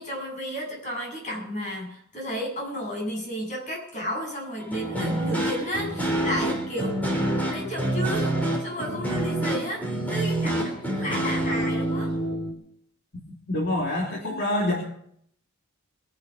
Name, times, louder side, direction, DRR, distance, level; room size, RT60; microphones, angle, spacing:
voice 1, 0.0-7.0 7.5-12.1, equal, 35° left, 0 dB, 7.6 m, -33 dB
sound 1, 4.6-12.5, right 1 dB, 10° left, 3.7 m, -27 dB
voice 2, 13.5-14.8, left 1 dB, 55° left, -2 dB, 3.2 m, -26 dB
22.5 x 10.5 x 5.5 m, 0.67 s
head